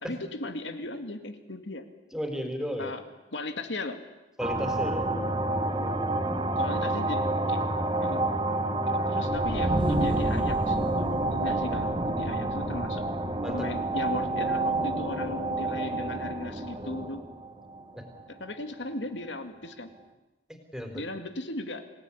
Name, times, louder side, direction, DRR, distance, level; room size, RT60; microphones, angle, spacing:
voice 1, 0.0-1.9 2.8-3.0 3.3-4.0 6.6-7.6 8.0-8.3 9.1-13.1 13.5-17.2 18.3-19.9 20.9-21.9, left 2 dB, 80° left, 8 dB, 2.4 m, -37 dB
voice 2, 2.1-2.9 4.4-5.1 13.4-13.7 18.0-18.1 20.7-21.0, equal, 5° right, 5 dB, 4.0 m, -33 dB
sound 1, 4.4-18.6, right 2 dB, 25° right, 1.9 m, -28 dB
27.0 x 17.5 x 10.0 m, 1.1 s
head